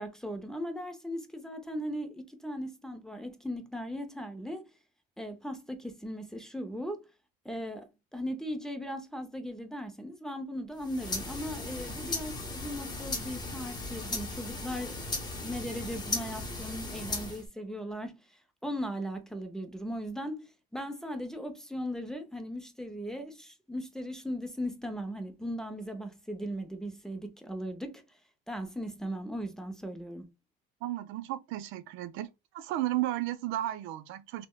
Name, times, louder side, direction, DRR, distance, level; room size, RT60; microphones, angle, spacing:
voice 1, 0.0-4.7 5.2-7.0 7.4-15.0 15.4-28.0 28.5-30.3, equal, 5° left, 0.5 m, -38 dB
sound 1, 10.8-17.5, left 2 dB, 20° left, 0.9 m, -37 dB
voice 2, 30.8-32.3 32.5-34.5, right 14 dB, 75° right, 0.4 m, -33 dB
3.4 x 2.1 x 2.2 m
cardioid pair, 115°, 21 cm